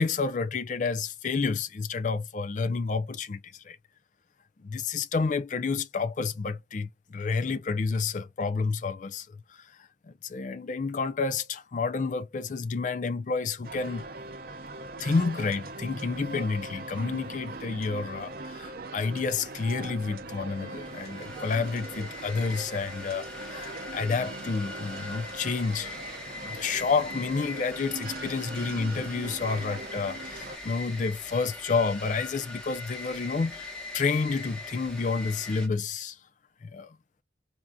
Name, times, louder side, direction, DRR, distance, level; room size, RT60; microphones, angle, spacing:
voice 1, 0.0-3.8 4.6-14.0 15.0-26.0 26.4-36.2 36.6-37.0, left 4 dB, 40° left, 0.4 m, -30 dB
sound 1, 13.6-30.6, right 2 dB, 50° right, 0.5 m, -41 dB
Harp, 15.2-30.7, right 2 dB, 25° right, 0.9 m, -58 dB
sound 2, 20.5-35.7, left 2 dB, 5° left, 0.9 m, -42 dB
3.5 x 2.6 x 2.2 m
head